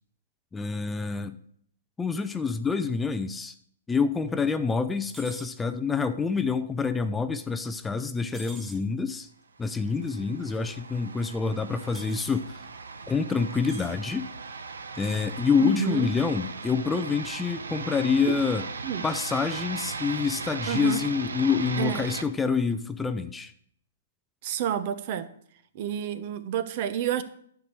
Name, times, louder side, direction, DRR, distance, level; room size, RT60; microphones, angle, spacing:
voice 1, 0.5-1.4 2.0-3.5 3.9-9.3 9.6-12.5 13.1-14.3 15.0-18.7 19.0-23.5, left 5 dB, 10° left, 0.5 m, -27 dB
sound 1, 5.1-5.5 8.3-8.8 11.9-12.4 13.7-13.9 14.9-15.3, right 1 dB, 10° right, 1.8 m, -45 dB
sound 2, 9.7-22.2, right 4 dB, 85° right, 0.8 m, -38 dB
voice 2, 15.6-16.1 18.8-19.0 20.7-21.0 21.8-22.1 24.4-25.3 25.7-27.2, right 9 dB, 45° right, 0.9 m, -29 dB
10.5 x 4.7 x 6.6 m
hypercardioid pair, 135°, 0 cm